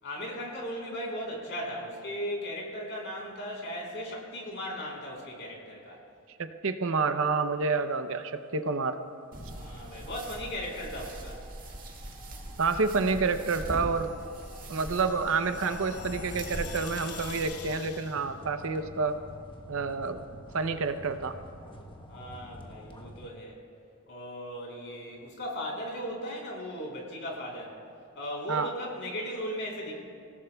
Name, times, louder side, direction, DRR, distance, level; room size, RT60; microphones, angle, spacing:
voice 1, 0.0-6.0 9.5-11.4 22.1-23.6 24.1-27.7 28.1-30.0, equal, 55° left, -2 dB, 3.8 m, -37 dB
voice 2, 6.4-9.0 12.6-14.1 14.7-19.2 19.7-20.2 20.5-21.4 28.5-28.7, right 4 dB, 60° right, 9 dB, 0.7 m, -28 dB
sound 1, 8.9-23.3, equal, 20° left, 1.1 m, -50 dB
sound 2, 9.3-17.4, right 1 dB, 40° right, 1.8 m, -42 dB
sound 3, 13.8-18.3, left 4 dB, 75° left, 0.9 m, -43 dB
27.0 x 17.0 x 2.3 m, 2.3 s
head